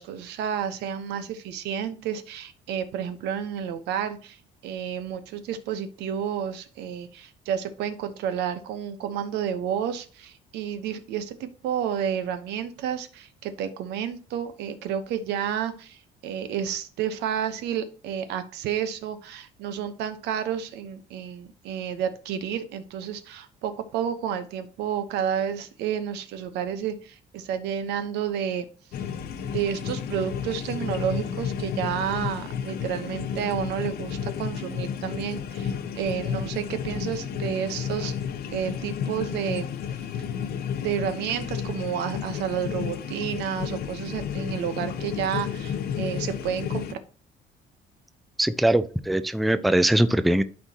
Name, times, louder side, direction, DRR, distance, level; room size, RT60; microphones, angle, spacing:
voice 1, 0.0-4.4 4.6-28.7 29.4-38.1 38.5-39.7 40.8-47.0, right 8 dB, 85° right, 1.0 m, -30 dB
sound 1, 28.9-46.9, left 8 dB, 65° left, 0.9 m, -32 dB
voice 2, 48.4-50.4, right 1 dB, ahead, 0.4 m, -21 dB
11.5 x 4.5 x 2.9 m
cardioid pair, 110°, 17 cm